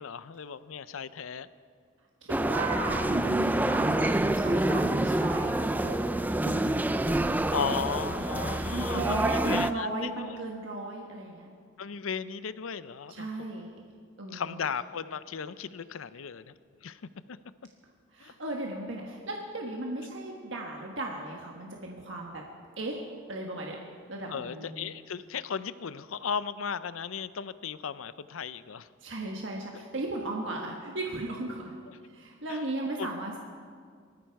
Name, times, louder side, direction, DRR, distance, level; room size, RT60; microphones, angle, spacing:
voice 1, 0.0-1.5 7.5-10.4 11.8-13.3 14.3-16.5 16.8-17.4 18.2-18.3 20.0-20.1 24.3-28.9 31.9-32.0 32.5-32.6 33.0-33.1, left 6 dB, 85° left, 15 dB, 0.5 m, -36 dB
voice 2, 2.2-6.0 6.4-7.2 7.6-7.7 8.0-11.5 13.1-13.7 14.2-14.6 18.1-22.4 22.8-23.0 23.3-23.8 24.1-24.9 29.0-31.7 32.1-33.4, right 2 dB, 65° right, 0 dB, 1.5 m, -36 dB
sound 1, 2.3-9.7, right 1 dB, 10° right, 0.4 m, -27 dB
19.0 x 14.5 x 4.7 m, 2.1 s
head